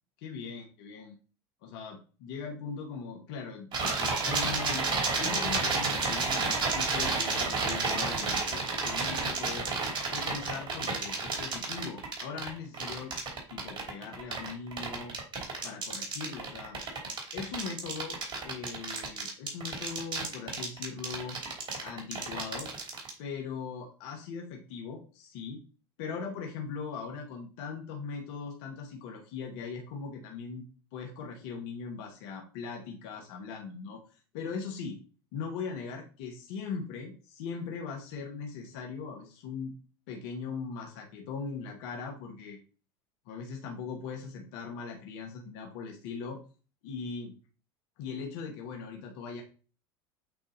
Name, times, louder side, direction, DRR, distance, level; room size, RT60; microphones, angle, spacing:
voice 1, 0.2-1.2 1.6-4.9 5.2-9.7 10.1-13.1 13.5-15.1 15.6-16.8 17.3-18.2 18.4-21.4 21.8-22.7 23.2-25.6 26.0-30.6 30.9-34.0 34.3-35.0 35.3-39.7 40.1-42.6 43.2-46.4 46.8-47.3 48.0-49.4, left 5 dB, 65° left, 1 dB, 1.4 m, -40 dB
sound 1, 3.7-23.1, right 4 dB, 40° right, 3.0 m, -31 dB
8.3 x 2.8 x 4.0 m, 0.36 s
hypercardioid pair, 90°, 13 cm